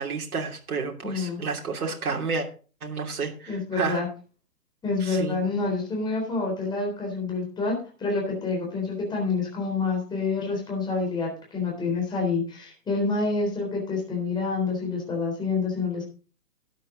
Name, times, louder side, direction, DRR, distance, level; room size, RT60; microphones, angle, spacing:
voice 1, 0.0-2.5 2.8-4.0 5.0-5.5, right 4 dB, 65° right, 1 dB, 2.9 m, -30 dB
voice 2, 1.0-1.4 3.5-4.1 4.8-16.1, left 4 dB, 10° left, -1 dB, 3.8 m, -27 dB
12.5 x 9.2 x 3.8 m, 0.38 s
hypercardioid pair, 145°, 47 cm